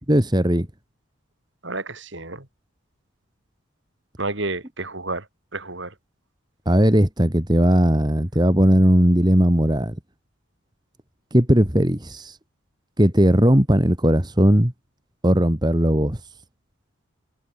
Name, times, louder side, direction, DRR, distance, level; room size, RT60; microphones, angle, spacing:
voice 1, 0.1-0.7 6.7-10.0 11.3-12.4 13.0-14.7 15.2-16.2, equal, 20° right, 2.2 m, -18 dB
voice 2, 1.6-2.4 4.2-5.2 5.5-5.9, right 2 dB, 60° right, 4.5 m, -30 dB
head